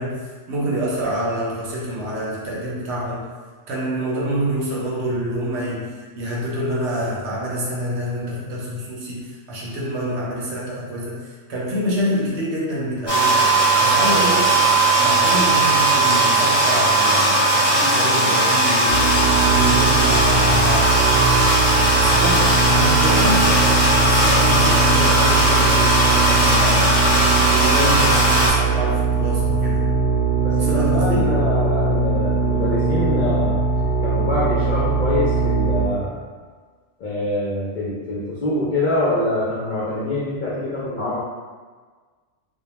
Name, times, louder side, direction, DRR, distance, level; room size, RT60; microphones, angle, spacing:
voice 1, 0.0-3.3 3.7-13.5 13.8-14.6 15.0-20.9 21.9-26.9 27.5-29.8 30.6-31.4, right 1 dB, 70° right, -5 dB, 0.9 m, -26 dB
sound 1, 13.1-28.5, right 2 dB, 25° left, 0.7 m, -18 dB
sound 2, 18.9-35.9, right 4 dB, 90° right, 1.0 m, -20 dB
voice 2, 30.4-36.2 37.0-41.2, left 1 dB, 60° left, -9 dB, 0.5 m, -25 dB
2.2 x 2.1 x 3.0 m, 1.5 s
omnidirectional pair, 1.3 m